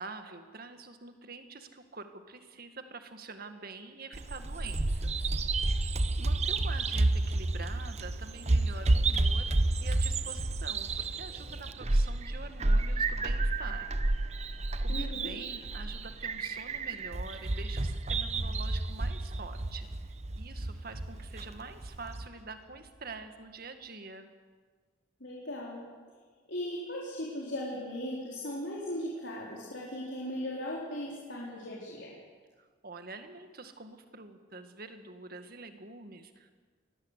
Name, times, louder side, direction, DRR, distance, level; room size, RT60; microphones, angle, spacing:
voice 1, 0.0-5.3 5.7-5.9 6.2-9.5 9.8-13.9 14.8-24.3 32.6-36.5, right 3 dB, 50° right, 7 dB, 1.9 m, -46 dB
Bird vocalization bird call bird song, 4.1-22.3, right 2 dB, 35° right, 0.9 m, -30 dB
voice 2, 14.9-15.3 25.2-25.8 26.5-32.1, left 1 dB, 70° left, -5 dB, 4.3 m, -38 dB
23.0 x 18.0 x 8.3 m, 1.5 s
head